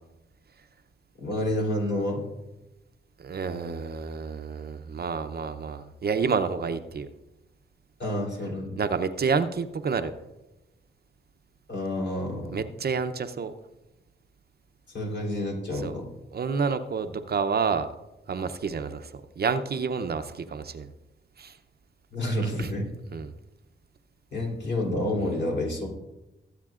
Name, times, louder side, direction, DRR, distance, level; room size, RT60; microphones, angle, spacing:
voice 1, 1.2-2.2 8.0-8.8 11.7-12.6 14.9-16.1 22.1-22.9 24.3-25.9, left 1 dB, 60° left, -2 dB, 3.6 m, -29 dB
voice 2, 3.2-7.1 8.8-10.1 12.5-13.5 15.7-16.0 16.3-17.9 18.3-20.9 21.4-21.6 22.6-22.7 23.1-23.3, right 5 dB, 50° right, 9 dB, 0.7 m, -29 dB
21.0 x 8.2 x 2.5 m, 0.99 s
cardioid pair, 80°, 20 cm